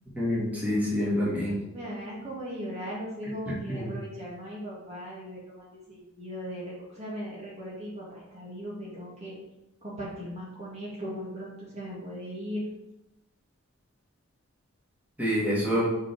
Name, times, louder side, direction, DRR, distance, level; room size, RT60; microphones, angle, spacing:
voice 1, 0.1-1.6 3.5-3.9 15.2-15.9, equal, 10° right, -7 dB, 2.3 m, -27 dB
voice 2, 1.7-9.4 9.8-12.6, equal, 30° right, -5 dB, 2.0 m, -38 dB
5.8 x 5.4 x 4.8 m, 0.95 s
head